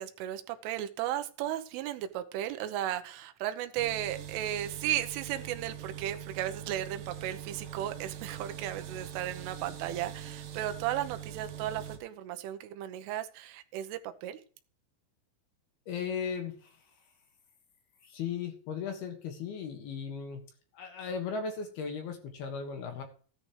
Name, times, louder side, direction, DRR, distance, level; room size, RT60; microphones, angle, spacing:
voice 1, 0.0-14.4, right 12 dB, 85° right, 8 dB, 3.4 m, -35 dB
sound 1, 3.8-12.0, right 9 dB, 65° right, 2.5 m, -43 dB
voice 2, 15.9-16.8 18.0-20.4 20.7-23.0, left 6 dB, 65° left, 4 dB, 3.2 m, -37 dB
15.0 x 10.5 x 3.2 m, 0.41 s
omnidirectional pair, 5.6 m